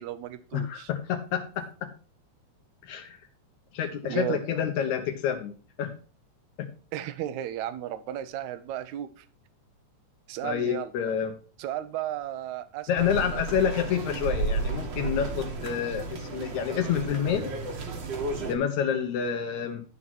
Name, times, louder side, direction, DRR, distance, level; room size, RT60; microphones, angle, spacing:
voice 1, 0.0-0.9 4.0-4.4 6.9-9.3 10.3-10.9 11.6-13.7, right 12 dB, 80° right, 12 dB, 2.1 m, -34 dB
voice 2, 0.5-1.6 2.8-3.2 3.7-5.5 5.8-5.9 6.6-6.7 10.4-11.3 12.9-17.5 18.4-19.8, left 8 dB, 75° left, 5 dB, 2.3 m, -28 dB
sound 1, 13.0-18.5, right 3 dB, 45° right, 1.7 m, -32 dB
12.0 x 4.2 x 6.0 m, 0.38 s
omnidirectional pair, 3.4 m